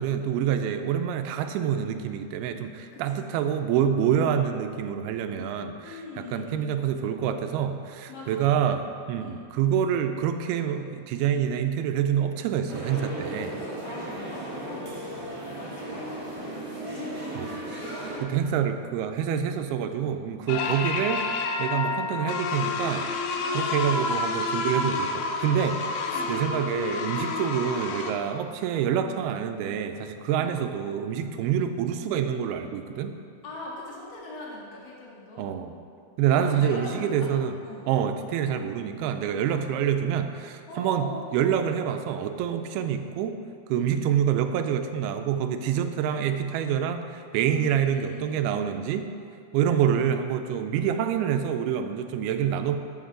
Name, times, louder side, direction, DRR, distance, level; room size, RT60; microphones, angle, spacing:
voice 1, 0.0-8.8 9.1-13.6 17.4-17.5 18.2-21.2 21.6-23.1 23.5-33.1 35.4-35.7 36.2-37.5 37.9-41.1 41.3-43.4 43.7-49.1 49.5-52.8, right 8 dB, 80° right, 7 dB, 2.4 m, -27 dB
voice 2, 2.9-3.3 5.8-6.7 8.1-8.6 9.2-9.4 13.8-15.2 15.5-17.5 20.4-20.8 23.3-24.2 26.1-26.4 30.2-30.6 33.4-35.7 36.3-37.3 37.6-37.8 39.4-39.8 40.7-41.3 43.7-44.1 47.5-48.5 49.9-50.0, left 2 dB, 50° left, -5 dB, 2.6 m, -41 dB
sound 1, 12.7-18.2, right 1 dB, 50° right, 1.2 m, -35 dB
sound 2, 20.5-28.1, left 3 dB, 75° left, 2.4 m, -29 dB
12.5 x 7.9 x 3.8 m, 2.3 s
omnidirectional pair, 4.6 m